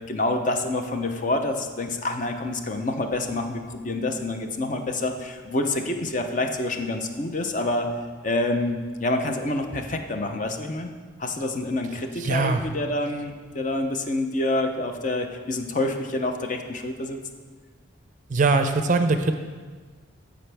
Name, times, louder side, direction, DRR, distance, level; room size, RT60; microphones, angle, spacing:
voice 1, 0.0-7.9 8.2-10.9 11.2-17.2, left 2 dB, 40° left, 5 dB, 0.6 m, -27 dB
voice 2, 12.2-12.6 18.3-19.3, right 3 dB, 40° right, 8 dB, 0.5 m, -21 dB
14.5 x 5.1 x 3.4 m, 1.5 s
head